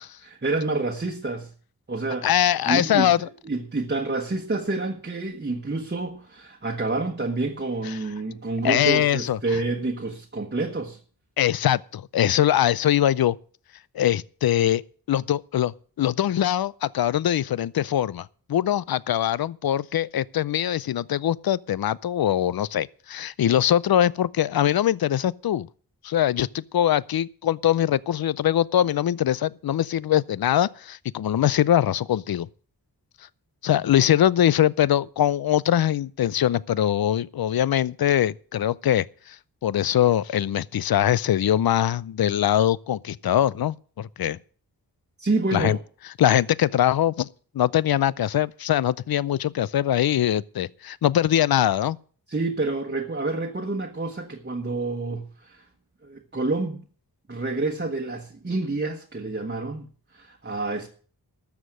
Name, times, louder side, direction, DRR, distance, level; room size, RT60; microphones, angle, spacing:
voice 1, 0.2-1.5 1.9-3.1 3.4-11.0 45.2-45.8 52.3-55.7 56.0-56.8 57.3-59.9 60.1-60.9, right 3 dB, 25° right, 1.3 m, -28 dB
voice 2, 2.2-3.3 8.6-9.4 11.4-13.4 13.9-14.8 15.1-25.7 26.0-32.5 33.6-39.4 39.6-44.4 45.5-45.8 46.2-47.3 47.5-52.0, left 11 dB, 65° left, 0.5 m, -22 dB
13.0 x 7.3 x 7.6 m
wide cardioid pair, 90°, 39 cm